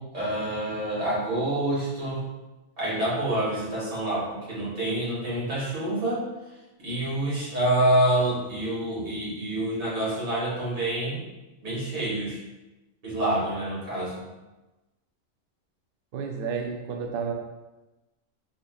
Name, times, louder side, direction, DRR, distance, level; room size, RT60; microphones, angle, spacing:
voice 1, 0.0-2.2 2.8-6.2 6.8-11.2 11.6-12.4 13.0-14.2, right 1 dB, 90° right, -7 dB, 2.0 m, -27 dB
voice 2, 16.1-17.3, right 6 dB, 70° right, 2 dB, 0.5 m, -31 dB
5.2 x 2.5 x 2.3 m, 1.1 s
omnidirectional pair, 1.4 m